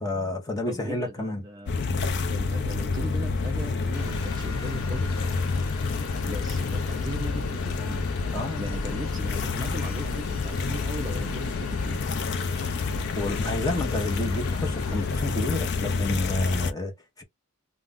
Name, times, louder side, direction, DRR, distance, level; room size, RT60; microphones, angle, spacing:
voice 1, 0.0-1.4 8.3-8.6 13.2-17.2, left 2 dB, 15° left, 0.7 m, -30 dB
voice 2, 0.7-1.9 2.2-5.2 6.2-8.0 8.6-12.1, right 1 dB, 20° right, 0.4 m, -39 dB
sound 1, 1.7-16.7, left 4 dB, 50° left, 0.4 m, -28 dB
sound 2, 3.9-15.6, left 5 dB, 85° left, 0.9 m, -43 dB
2.3 x 2.1 x 3.5 m
head